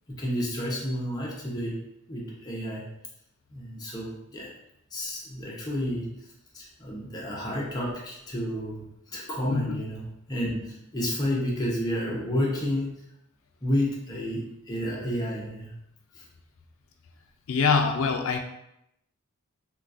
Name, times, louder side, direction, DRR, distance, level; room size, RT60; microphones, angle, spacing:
voice 1, 0.1-1.8 2.1-2.9 3.5-4.5 4.9-6.1 6.5-12.9 13.6-15.7 16.1-16.2, equal, 20° left, -4 dB, 0.7 m, -31 dB
voice 2, 9.5-9.8 17.5-18.4, left 5 dB, 65° left, 5 dB, 0.4 m, -24 dB
3.8 x 2.3 x 2.4 m, 0.80 s
head